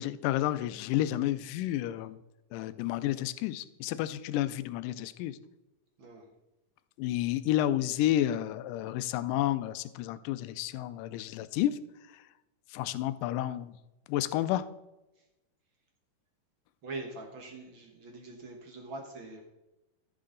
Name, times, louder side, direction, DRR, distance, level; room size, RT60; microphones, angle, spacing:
voice 1, 0.0-2.2 2.5-5.4 7.0-11.8 12.1-12.2 12.7-13.8 14.1-14.7, left 13 dB, 85° left, 14 dB, 2.2 m, -31 dB
voice 2, 6.0-6.3 15.1-15.3 16.8-19.4, right 2 dB, 55° right, 2 dB, 1.5 m, -43 dB
14.0 x 6.7 x 3.8 m, 0.96 s
omnidirectional pair, 3.8 m